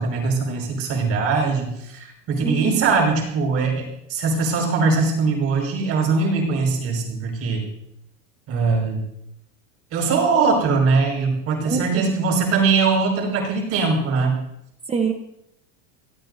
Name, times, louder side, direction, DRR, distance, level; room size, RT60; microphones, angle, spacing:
voice 1, 0.0-7.6 8.5-9.0 9.9-14.4, right 4 dB, 40° right, -1 dB, 5.8 m, -21 dB
voice 2, 2.4-2.9 11.6-12.1 14.9-15.1, right 5 dB, 15° right, 4 dB, 1.1 m, -24 dB
27.5 x 18.0 x 2.7 m, 0.80 s
supercardioid pair, 155°, 39 cm